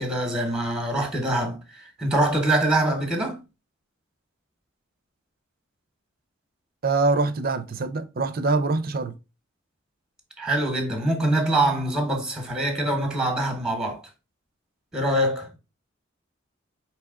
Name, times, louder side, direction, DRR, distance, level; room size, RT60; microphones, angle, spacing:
voice 1, 0.0-3.4 10.4-14.0 14.9-15.5, right 1 dB, 5° right, 0.9 m, -24 dB
voice 2, 6.8-9.1, right 3 dB, 45° right, 0.5 m, -24 dB
4.7 x 3.0 x 3.5 m
head